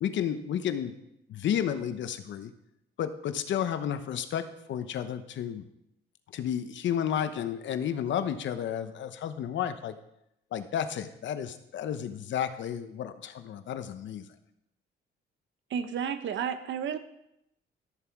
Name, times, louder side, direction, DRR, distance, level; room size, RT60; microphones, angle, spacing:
voice 1, 0.0-0.9 1.3-2.5 3.0-5.7 6.3-10.0 10.5-14.3, left 9 dB, 70° left, 10 dB, 0.9 m, -32 dB
voice 2, 15.7-17.0, right 8 dB, 70° right, 11 dB, 0.9 m, -31 dB
13.0 x 6.8 x 4.7 m, 0.80 s
cardioid pair, 90°, 20 cm